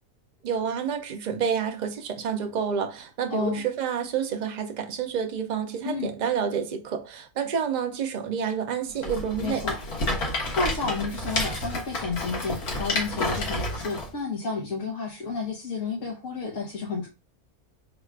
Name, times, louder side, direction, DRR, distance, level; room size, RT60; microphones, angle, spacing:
voice 1, 0.4-9.7, right 7 dB, 70° right, 0.4 m, -29 dB
voice 2, 3.3-3.6 5.8-6.1 9.4-9.8 10.1-17.1, left 4 dB, 60° left, 1.2 m, -31 dB
Rattle, 9.0-14.1, left 2 dB, 85° left, 1.9 m, -30 dB
4.0 x 2.4 x 4.5 m
omnidirectional pair, 1.5 m